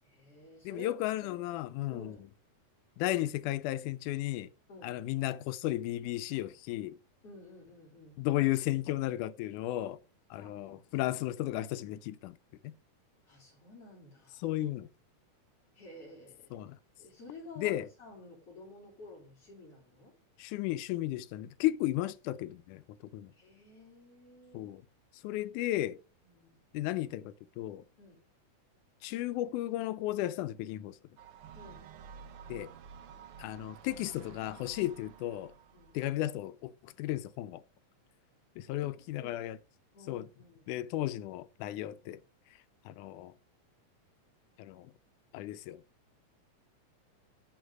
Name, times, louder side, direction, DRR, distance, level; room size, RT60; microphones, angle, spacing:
voice 1, 0.0-1.6 1.9-2.3 4.7-4.9 7.2-8.2 10.3-11.0 13.2-14.5 15.7-16.6 17.0-20.1 23.4-24.7 26.2-26.6 28.0-28.2 31.5-31.8 35.7-35.9 39.2-39.4 39.9-40.7, left 2 dB, 50° left, 4.4 m, -52 dB
voice 2, 0.7-2.2 3.0-4.5 4.8-6.9 8.2-10.0 10.3-12.4 12.6-12.7 14.4-14.9 16.5-16.8 17.6-17.9 20.4-22.8 23.1-23.3 24.5-24.8 25.2-26.0 26.7-27.8 29.0-31.0 32.5-32.7 33.4-35.5 35.9-37.6 38.6-39.6 40.1-40.3 40.7-42.2 42.9-43.3 44.6-44.9 45.3-45.8, left 15 dB, 90° left, 2.1 m, -34 dB
sound 1, 31.2-36.1, right 6 dB, 85° right, 1.2 m, -51 dB
11.5 x 4.0 x 4.8 m
omnidirectional pair, 3.5 m